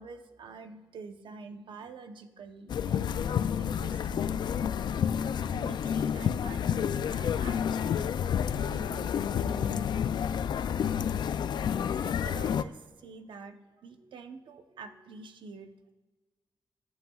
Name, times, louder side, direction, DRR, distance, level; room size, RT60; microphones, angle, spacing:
voice 1, 0.0-4.6 5.5-8.1 8.6-10.2 11.9-15.9, right 4 dB, 80° right, 7 dB, 0.8 m, -47 dB
sound 1, 2.7-12.6, left 8 dB, 65° left, 0.3 m, -29 dB
21.5 x 8.1 x 2.3 m, 1.2 s
wide cardioid pair, 125°, 8 cm